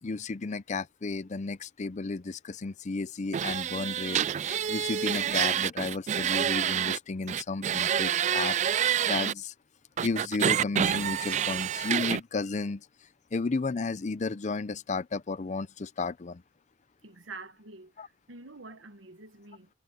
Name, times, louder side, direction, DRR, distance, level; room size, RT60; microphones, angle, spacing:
voice 1, 0.0-4.2 4.5-8.6 9.0-9.5 10.0-12.9 13.3-16.4 18.0-18.1, left 3 dB, 40° left, 0.5 m, -33 dB
sound 1, 3.3-7.0 7.3-9.3 10.0-12.2, right 9 dB, 40° right, 0.3 m, -28 dB
voice 2, 17.0-19.7, right 3 dB, 90° right, 1.3 m, -47 dB
head